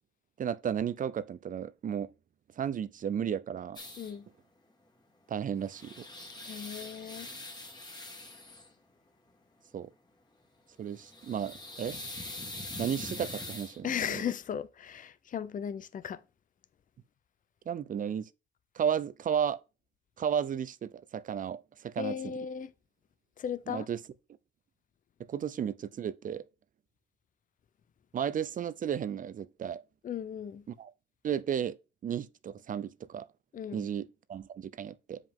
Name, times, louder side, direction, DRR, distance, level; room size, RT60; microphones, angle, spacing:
voice 1, 0.4-2.1 2.6-3.8 5.3-6.0 9.7-9.9 10.8-12.0 12.8-14.2 17.7-18.3 18.8-19.6 20.2-22.3 23.7-24.0 25.3-26.4 28.1-29.8 30.7-30.9 31.2-31.8 32.0-33.3 33.7-35.2, right 8 dB, 40° right, 0.5 m, -33 dB
sound 1, 3.8-4.2 5.4-8.7 10.9-13.8, left 2 dB, 20° left, 1.6 m, -43 dB
voice 2, 6.5-7.3 13.8-16.2 22.0-22.7 23.4-23.9 30.0-30.6 33.5-33.9, left 8 dB, 45° left, 0.6 m, -36 dB
7.3 x 4.9 x 3.7 m
cardioid pair, 90°, 20 cm